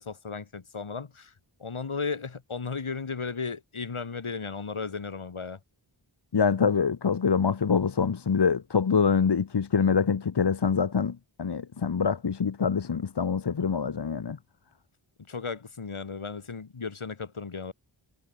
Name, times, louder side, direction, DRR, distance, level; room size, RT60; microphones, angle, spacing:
voice 1, 0.0-1.3 1.6-5.6 15.3-17.7, left 5 dB, 85° left, 3.1 m, -35 dB
voice 2, 6.3-14.4, left 6 dB, 55° left, 1.1 m, -25 dB
wide cardioid pair, 65°, 48 cm